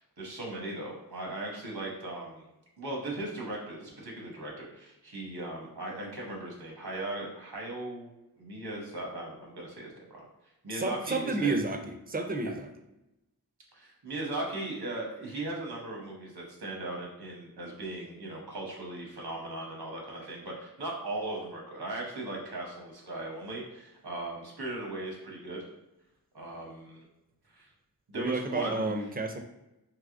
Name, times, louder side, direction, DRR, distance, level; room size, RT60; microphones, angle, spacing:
voice 1, 0.0-2.5 2.8-10.2 10.6-11.5 12.4-12.5 13.7-25.7 26.3-27.0 27.5-27.7 28.1-28.9, right 2 dB, 85° right, -2 dB, 1.0 m, -38 dB
voice 2, 10.7-12.7 28.1-29.4, right 3 dB, 25° right, 5 dB, 0.4 m, -31 dB
3.4 x 2.9 x 2.5 m, 0.93 s
wide cardioid pair, 60°, 38 cm